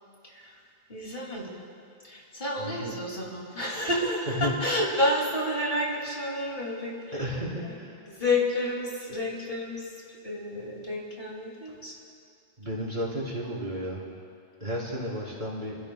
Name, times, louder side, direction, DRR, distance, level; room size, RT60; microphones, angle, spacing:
voice 1, 0.2-0.6 0.9-1.5 2.0-7.3 7.6-7.8 8.1-9.9 10.2-11.9, left 1 dB, 60° left, -3 dB, 2.7 m, -30 dB
voice 2, 2.6-2.9 4.4-4.5 7.1-8.1 12.6-14.0 14.6-15.7, equal, 50° right, -5 dB, 3.6 m, -33 dB
28.0 x 15.0 x 2.3 m, 2.4 s
omnidirectional pair, 1.0 m